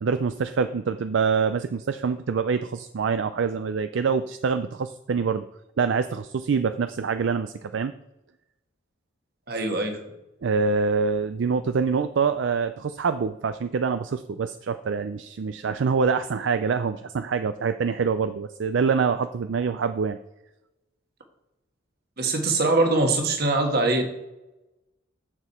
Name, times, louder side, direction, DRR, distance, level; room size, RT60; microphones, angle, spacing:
voice 1, 0.0-5.5 5.8-7.9 10.4-20.2, right 5 dB, 70° right, 11 dB, 0.4 m, -25 dB
voice 2, 9.5-10.0 22.2-24.0, right 2 dB, 55° right, 4 dB, 1.5 m, -22 dB
10.0 x 7.0 x 4.3 m, 0.96 s
head